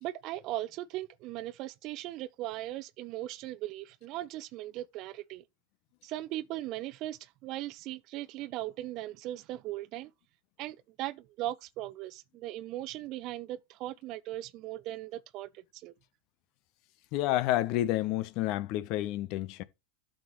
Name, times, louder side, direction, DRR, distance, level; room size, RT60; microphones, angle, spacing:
voice 1, 0.0-5.4 6.0-10.1 10.6-15.9, right 15 dB, 50° right, 0.7 m, -38 dB
voice 2, 17.1-19.6, left 14 dB, 55° left, 1.0 m, -29 dB
12.0 x 6.5 x 3.1 m
hypercardioid pair, 90°, 0 cm